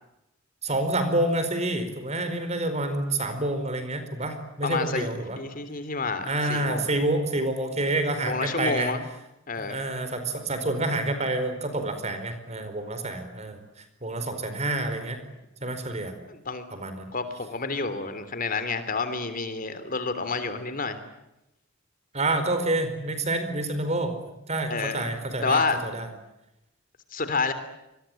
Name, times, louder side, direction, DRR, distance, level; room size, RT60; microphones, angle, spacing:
voice 1, 0.6-5.4 6.2-8.9 9.6-13.6 14.0-15.2 15.6-16.1 16.7-17.1 22.1-24.1 24.5-26.1, right 2 dB, 35° right, 9 dB, 4.7 m, -28 dB
voice 2, 4.6-6.8 8.2-9.0 9.5-9.8 16.3-16.6 17.1-21.0 24.7-25.1 25.4-25.8 27.1-27.5, left 4 dB, 45° left, 11 dB, 3.2 m, -29 dB
27.5 x 22.0 x 9.1 m, 0.90 s
head